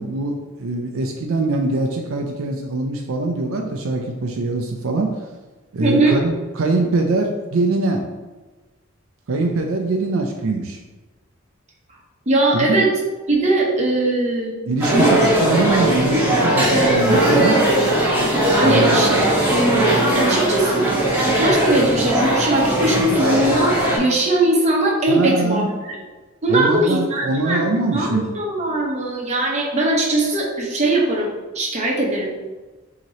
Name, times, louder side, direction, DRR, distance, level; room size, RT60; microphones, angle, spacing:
voice 1, 0.0-5.2 5.7-8.0 9.3-10.8 12.5-12.8 14.7-17.6 18.6-19.0 25.1-25.7 26.5-28.3, right 2 dB, 75° right, 3 dB, 0.5 m, -22 dB
voice 2, 5.8-6.2 12.3-12.9 13.3-14.5 14.9-15.1 15.7-15.8 16.1-16.4 16.7-17.6 18.6-26.0 26.4-27.7 27.9-32.3, right 1 dB, 30° right, -3 dB, 0.9 m, -20 dB
sound 1, 14.8-24.0, right 1 dB, 10° right, 1.1 m, -18 dB
6.0 x 2.9 x 2.8 m, 1.2 s
head